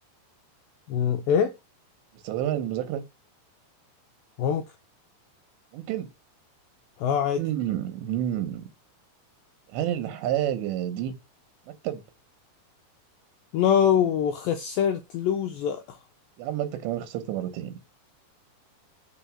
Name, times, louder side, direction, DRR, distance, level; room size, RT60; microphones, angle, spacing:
voice 1, 0.9-1.5 4.4-4.6 7.0-7.4 13.5-16.0, left 8 dB, 85° left, 2.1 m, -24 dB
voice 2, 2.3-3.0 5.7-6.1 7.3-8.7 9.7-11.1 11.8-12.0 16.4-17.8, right 11 dB, 90° right, 3.4 m, -29 dB
6.8 x 3.6 x 6.1 m
omnidirectional pair, 4.9 m